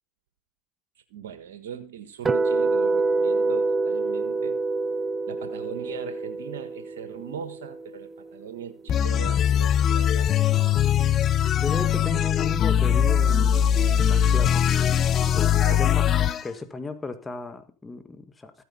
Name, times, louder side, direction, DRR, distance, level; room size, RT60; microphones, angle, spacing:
voice 1, 1.1-4.6 5.3-10.3 15.5-15.9, right 8 dB, 80° right, 1.5 m, -39 dB
sound 1, 2.2-8.3, right 3 dB, 25° right, 0.7 m, -26 dB
sound 2, 8.9-16.4, left 9 dB, 40° left, 0.7 m, -21 dB
voice 2, 11.6-14.7 15.3-16.1 16.4-18.6, left 3 dB, 15° left, 1.6 m, -35 dB
14.5 x 9.6 x 3.9 m
hypercardioid pair, 95°, 0 cm